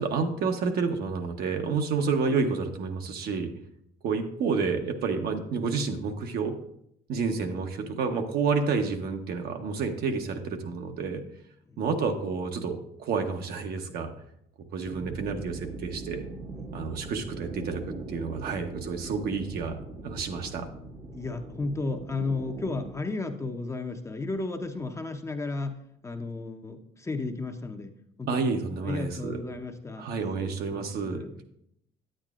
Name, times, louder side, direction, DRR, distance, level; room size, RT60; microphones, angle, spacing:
voice 1, 0.0-3.5 4.0-6.5 7.1-11.2 11.8-14.1 14.7-16.2 16.7-17.8 18.1-20.7 28.3-29.4 30.0-31.2, right 5 dB, 65° right, 5 dB, 0.9 m, -29 dB
sound 1, 14.8-22.9, right 3 dB, 25° right, 0.7 m, -41 dB
voice 2, 21.1-28.4 28.8-30.1 30.4-31.4, left 3 dB, 15° left, 6 dB, 0.6 m, -34 dB
8.9 x 8.7 x 2.5 m, 0.75 s
cardioid pair, 110°, 17 cm